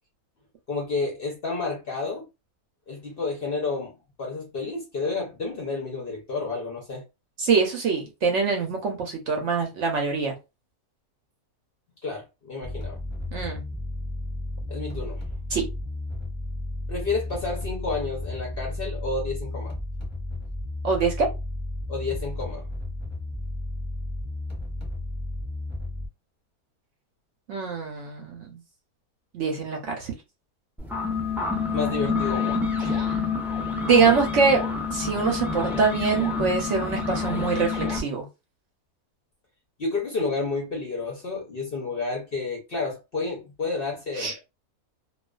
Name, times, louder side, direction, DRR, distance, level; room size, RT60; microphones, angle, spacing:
voice 1, 0.7-2.2 2.9-3.9 4.2-7.0 12.0-13.0 14.7-15.2 16.9-19.7 21.9-22.7 31.7-32.6 39.8-44.4, left 3 dB, 55° left, 0.7 m, -30 dB
voice 2, 7.4-10.3 13.3-13.6 15.5-15.6 20.8-21.3 27.5-28.6 29.3-30.1 32.8-33.2 33.7-34.6 34.9-38.2 44.2-44.3, right 5 dB, 65° right, 0.8 m, -24 dB
sound 1, 12.6-26.1, left 2 dB, 15° left, 0.8 m, -33 dB
sound 2, 30.8-38.0, left 5 dB, 5° right, 0.4 m, -28 dB
2.3 x 2.3 x 2.2 m
omnidirectional pair, 1.6 m